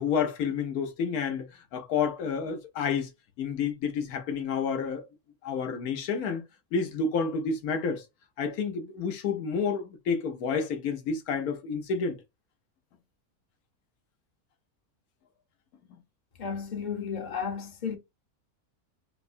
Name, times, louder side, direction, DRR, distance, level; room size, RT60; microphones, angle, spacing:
voice 1, 0.0-1.5 1.7-3.1 3.4-5.0 5.4-6.4 6.7-8.0 8.4-12.2, left 5 dB, 85° left, 1.2 m, -29 dB
voice 2, 16.4-18.0, left 6 dB, 40° left, 0.8 m, -33 dB
4.6 x 2.1 x 2.6 m
omnidirectional pair, 1.5 m